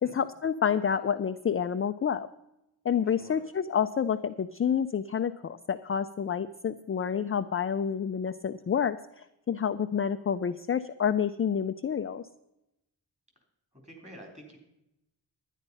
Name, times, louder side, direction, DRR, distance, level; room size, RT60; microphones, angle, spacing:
voice 1, 0.1-2.3 2.8-12.2, left 7 dB, 30° left, 10 dB, 0.4 m, -29 dB
voice 2, 3.1-3.4 13.8-14.6, equal, 15° right, 2 dB, 3.5 m, -48 dB
11.5 x 10.0 x 5.5 m, 0.88 s
wide cardioid pair, 110°, 44 cm